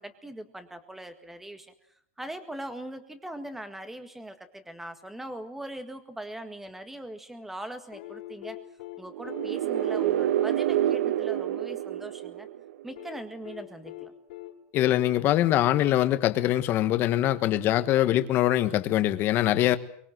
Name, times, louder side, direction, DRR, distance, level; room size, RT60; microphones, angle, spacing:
voice 1, 0.0-1.7 2.2-8.6 9.0-12.5 12.8-14.1, right 1 dB, 5° right, 9 dB, 1.8 m, -41 dB
sound 1, 7.9-12.0 13.0-16.5 18.0-18.1, left 15 dB, 65° left, 5.1 m, -45 dB
sound 2, 9.1-12.9, right 12 dB, 80° right, 1.3 m, -27 dB
voice 2, 14.7-19.8, left 13 dB, 35° left, 10 dB, 1.4 m, -23 dB
24.5 x 22.0 x 7.8 m, 0.66 s
supercardioid pair, 160°, 7 cm